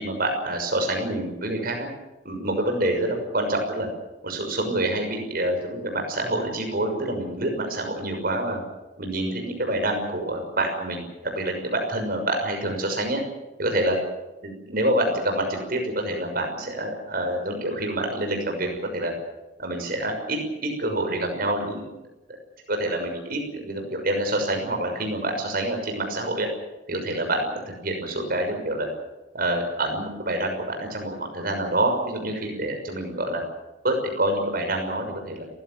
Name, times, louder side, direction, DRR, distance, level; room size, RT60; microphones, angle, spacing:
voice 1, 0.0-1.9 2.2-3.9 4.2-8.6 9.0-13.2 13.6-14.0 14.4-19.1 19.6-21.8 22.7-26.5 26.9-28.9 29.3-33.4 33.8-35.4, right 1 dB, 55° right, 3 dB, 6.2 m, -27 dB
30.0 x 16.0 x 7.7 m, 1.1 s
head